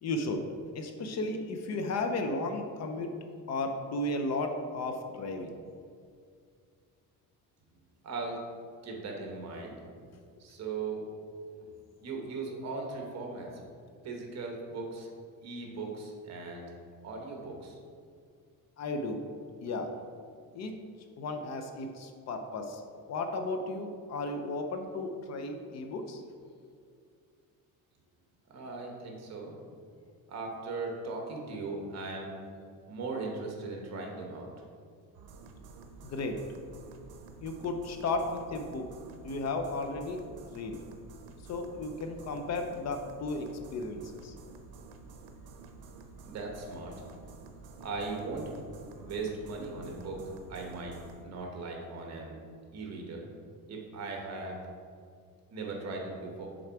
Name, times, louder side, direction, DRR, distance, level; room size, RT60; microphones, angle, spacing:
voice 1, 0.0-3.1 3.5-5.5 18.8-19.2 19.6-19.9 20.5-20.7 21.2-26.2 36.0-36.4 37.4-38.9 39.2-40.3 40.5-40.8 41.5-44.3, left 2 dB, 45° left, 5 dB, 0.5 m, -34 dB
voice 2, 8.0-8.4 8.8-9.8 10.4-11.0 11.6-11.7 12.0-13.5 14.0-15.1 15.4-16.7 17.0-17.7 28.5-29.5 30.3-32.4 32.9-34.5 46.2-46.9 47.8-48.5 49.0-50.2 50.5-50.9 51.2-52.4 52.7-53.3 53.7-54.6 55.5-56.5, right 3 dB, 45° right, 1 dB, 1.1 m, -38 dB
sound 1, 35.1-51.3, right 4 dB, 80° right, 0.7 m, -50 dB
6.6 x 3.9 x 4.6 m, 2.2 s
cardioid pair, 175°, 36 cm